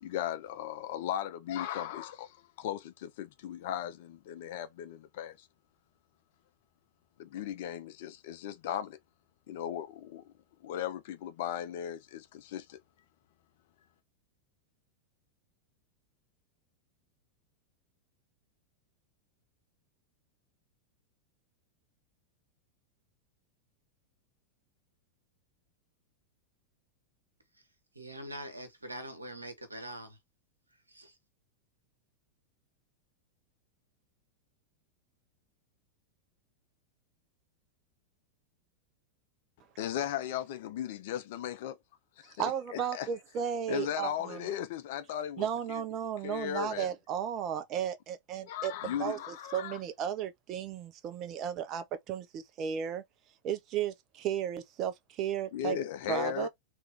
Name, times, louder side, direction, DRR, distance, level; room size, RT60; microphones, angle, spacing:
voice 1, 0.0-5.5 7.2-9.0 9.5-10.3 10.6-12.8 39.8-41.8 42.2-43.1 43.7-45.8 46.2-46.9 48.4-49.8 55.5-56.5, left 10 dB, 50° left, 0.6 m, -37 dB
voice 2, 27.9-30.2 30.9-31.2, right 1 dB, 80° right, 1.2 m, -43 dB
voice 3, 42.4-44.5 45.4-49.2 49.5-53.0 53.4-55.8 56.1-56.5, right 9 dB, 35° right, 0.7 m, -34 dB
3.2 x 3.0 x 3.5 m
figure-of-eight pair, 90°, 0 cm